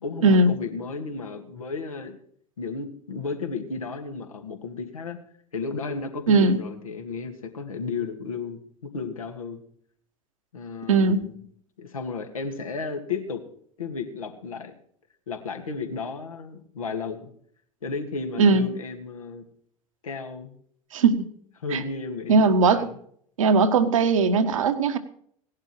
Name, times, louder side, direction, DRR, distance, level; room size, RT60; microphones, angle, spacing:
voice 1, 0.0-2.2 2.6-5.2 5.5-9.6 10.5-11.3 11.8-13.4 13.8-14.7 15.3-17.3 17.8-19.4 20.0-20.6 21.6-23.0, left 4 dB, 75° left, 4 dB, 2.4 m, -33 dB
voice 2, 6.3-6.6 10.9-11.2 18.4-18.7 20.9-21.3 21.7-21.8 22.3-22.9 23.4-25.0, right 3 dB, 65° right, 8 dB, 1.6 m, -19 dB
18.0 x 11.5 x 4.6 m, 0.63 s
figure-of-eight pair, 75°, 18 cm